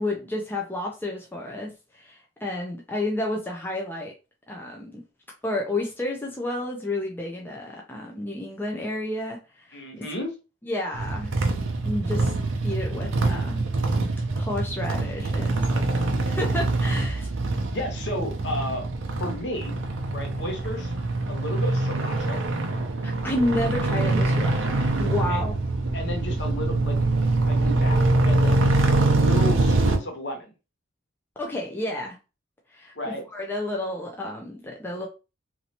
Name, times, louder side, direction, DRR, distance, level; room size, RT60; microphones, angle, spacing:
voice 1, 0.0-4.1 4.5-5.0 5.4-10.1 10.6-11.3 11.8-12.3 12.6-13.7 14.4-17.3 23.0-25.5 31.4-32.2 32.7-35.1, left 1 dB, 10° left, -1 dB, 0.4 m, -31 dB
voice 2, 9.7-10.3 17.7-18.9 19.2-19.8 20.1-20.9 21.3-22.4 25.3-25.4 25.9-27.0 27.4-30.5 33.0-33.2, left 1 dB, 55° left, 3 dB, 0.9 m, -33 dB
sound 1, 10.9-30.0, right 2 dB, 70° right, 0.6 m, -24 dB
3.1 x 2.8 x 2.8 m, 0.30 s
head